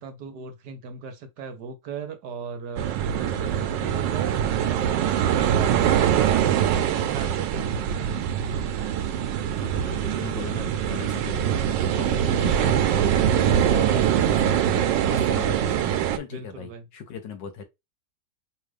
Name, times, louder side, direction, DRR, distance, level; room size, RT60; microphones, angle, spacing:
voice 1, 0.0-6.8 7.1-8.0 16.2-16.8, right 6 dB, 70° right, 1.4 m, -37 dB
sound 1, 2.8-16.2, right 9 dB, 90° right, 1.3 m, -23 dB
voice 2, 3.2-3.5 7.9-8.4 9.6-17.6, left 6 dB, 85° left, 1.7 m, -39 dB
5.2 x 2.4 x 3.3 m
omnidirectional pair, 1.9 m